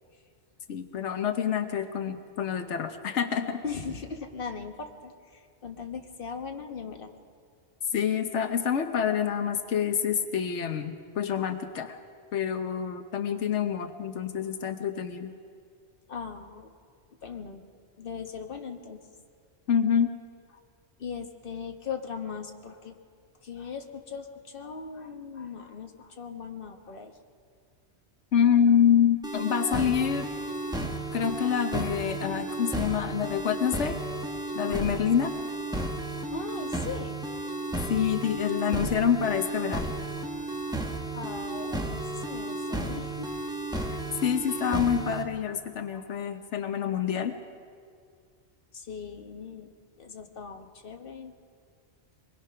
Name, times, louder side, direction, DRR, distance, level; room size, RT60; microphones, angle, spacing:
voice 1, 0.7-3.6 7.9-12.0 12.3-15.3 19.7-20.1 28.3-30.3 31.1-34.0 34.5-35.3 37.9-39.9 44.2-47.4, left 8 dB, 85° left, 7 dB, 1.2 m, -27 dB
voice 2, 3.6-7.2 16.1-16.7 17.2-17.6 18.0-19.0 21.0-22.9 23.4-27.1 36.3-37.5 38.6-38.7 40.7-40.8 41.1-43.3 45.9-46.1 48.7-49.7 50.0-51.3, left 5 dB, 50° left, 4 dB, 1.5 m, -39 dB
sound 1, 29.2-45.2, right 2 dB, 5° right, 1.5 m, -33 dB
24.5 x 20.5 x 5.8 m, 2.1 s
omnidirectional pair, 1.2 m